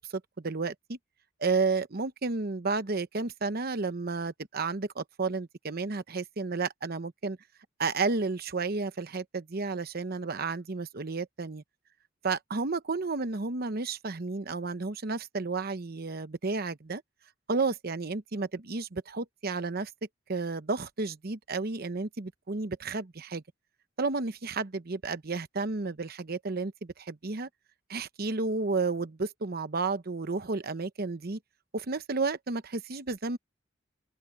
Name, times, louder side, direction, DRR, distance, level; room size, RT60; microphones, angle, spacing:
voice 1, 0.1-1.0 1.4-7.4 7.8-11.6 12.2-17.0 17.5-19.9 20.3-23.4 24.0-27.5 27.9-31.4 31.7-33.4, right 3 dB, 50° right, 0.9 m, -32 dB
open air
head